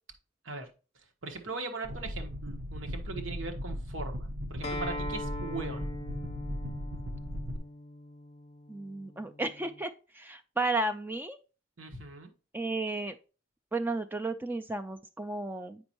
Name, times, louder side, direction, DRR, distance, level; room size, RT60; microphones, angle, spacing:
voice 1, 1.2-5.9 11.8-12.3, right 3 dB, 85° right, 5 dB, 1.3 m, -40 dB
sound 1, 1.8-7.6, equal, 65° right, 0.8 m, -37 dB
Acoustic guitar, 4.6-9.8, left 1 dB, 35° left, 0.6 m, -41 dB
voice 2, 8.7-11.4 12.5-13.2 13.7-15.8, right 2 dB, 10° right, 7 dB, 0.3 m, -33 dB
7.8 x 5.3 x 2.9 m, 0.33 s
head